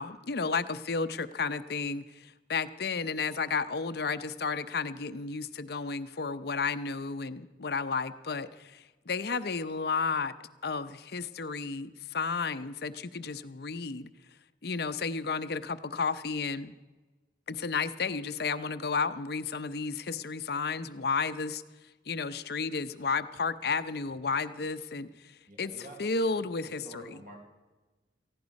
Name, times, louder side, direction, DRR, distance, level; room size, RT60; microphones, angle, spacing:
voice 1, 0.0-10.3 10.6-14.1 14.6-16.7 17.5-21.6 22.1-27.2, left 4 dB, 60° left, 12 dB, 0.7 m, -32 dB
voice 2, 25.5-26.1 26.8-27.4, right 1 dB, 50° right, 1 dB, 4.3 m, -48 dB
18.0 x 15.5 x 5.2 m, 1.2 s
head